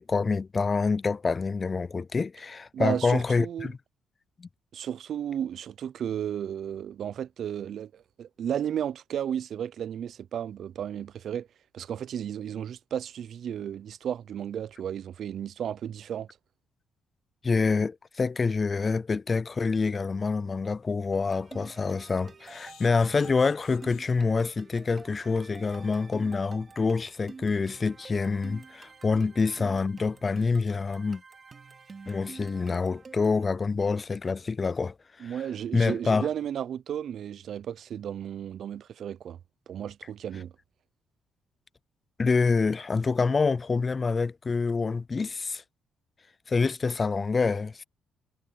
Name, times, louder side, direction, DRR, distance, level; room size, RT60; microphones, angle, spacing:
voice 1, 0.0-3.8 4.4-4.5 17.4-31.2 32.1-34.9 35.2-35.3 35.7-36.3 42.2-45.6 46.5-47.8, left 4 dB, 30° left, 0.4 m, -26 dB
voice 2, 2.7-3.7 4.7-11.5 11.7-16.3 35.2-39.4 39.7-40.5, right 9 dB, 65° right, 0.5 m, -33 dB
sound 1, 20.1-20.2 20.7-20.8 21.1-21.3 22.4-24.1 24.7-24.9 25.2-25.3 25.6-25.7, left 13 dB, 85° left, 6.9 m, -54 dB
sound 2, 21.1-33.4, right 5 dB, 35° right, 2.8 m, -49 dB
cardioid pair, 90°, 0 cm